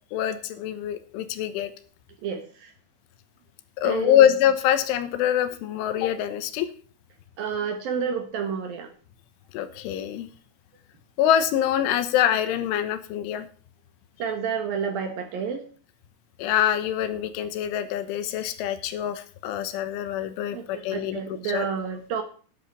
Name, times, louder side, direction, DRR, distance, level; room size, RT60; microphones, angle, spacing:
voice 1, 0.1-1.7 3.8-6.7 9.5-10.3 11.2-13.5 16.4-21.7, left 10 dB, 80° left, 12 dB, 3.6 m, -24 dB
voice 2, 2.2-2.7 3.8-4.3 7.4-8.9 14.2-15.6 20.5-22.2, right 6 dB, 65° right, 6 dB, 2.6 m, -30 dB
12.0 x 11.0 x 4.2 m, 0.40 s
omnidirectional pair, 5.7 m